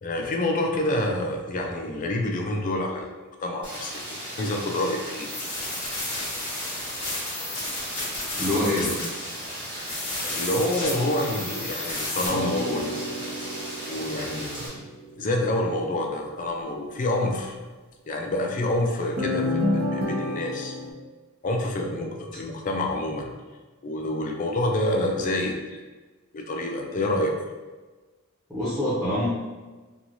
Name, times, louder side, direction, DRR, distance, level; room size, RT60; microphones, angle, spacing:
voice 1, 0.0-3.1 3.4-4.0 4.4-5.3 10.2-12.9 13.9-14.8 15.2-17.6 18.1-20.7 21.4-23.3 23.8-25.8 26.3-27.3, left 1 dB, 35° left, 2 dB, 0.4 m, -27 dB
Rain, 3.6-14.7, right 1 dB, 20° right, 1.0 m, -37 dB
sound 1, 5.1-12.3, left 2 dB, 85° left, 1.1 m, -33 dB
voice 2, 8.3-9.0 28.5-29.3, left 1 dB, ahead, -11 dB, 0.7 m, -25 dB
sound 2, 12.3-14.9 19.2-20.9, left 1 dB, 40° right, 0.6 m, -29 dB
3.0 x 2.3 x 2.6 m, 1.3 s
head